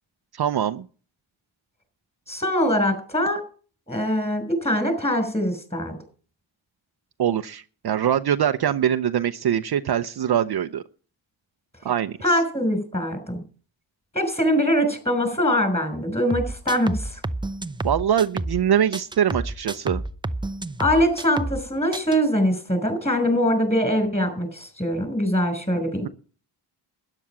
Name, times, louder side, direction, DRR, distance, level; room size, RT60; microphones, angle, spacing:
voice 1, 0.3-0.9 7.2-10.8 11.8-12.4 17.8-20.0, right 9 dB, 50° right, 9 dB, 0.8 m, -23 dB
voice 2, 2.3-3.4 3.9-6.0 12.2-13.4 14.1-17.2 20.8-26.1, equal, 15° left, 9 dB, 5.9 m, -23 dB
sound 1, 16.3-18.7 18.9-21.7 21.9-22.2, right 2 dB, 10° right, 0.7 m, -30 dB
12.5 x 10.0 x 6.0 m, 0.39 s
cardioid pair, 85°, 48 cm